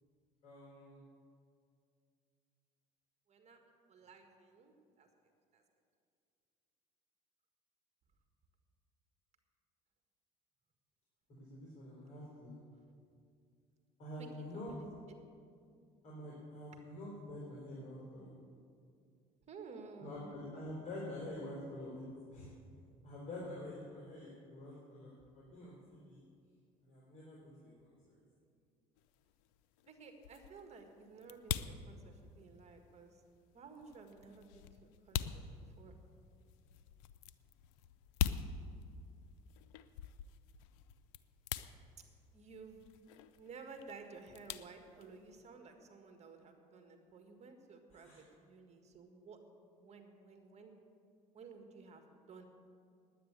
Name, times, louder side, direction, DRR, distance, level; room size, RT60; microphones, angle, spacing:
voice 1, 0.4-1.0 11.4-12.6 14.0-14.7 16.0-18.3 20.0-22.0 22.3-22.5 23.0-26.2 26.9-27.7 28.1-28.2 35.2-35.3 48.0-48.2, left 1 dB, 45° left, -5 dB, 4.0 m, -47 dB
voice 2, 3.3-3.6 3.9-5.1 5.5-5.6 14.2-14.9 19.5-20.6 29.9-33.2 33.5-35.4 35.7-36.0 42.3-42.9 43.4-49.4 49.7-50.7 51.3-52.4, right 4 dB, 40° right, 5 dB, 1.8 m, -54 dB
sound 1, 29.0-45.5, left 9 dB, 85° left, 0.5 m, -44 dB
10.0 x 9.2 x 8.2 m, 2.3 s
supercardioid pair, 90°, 16 cm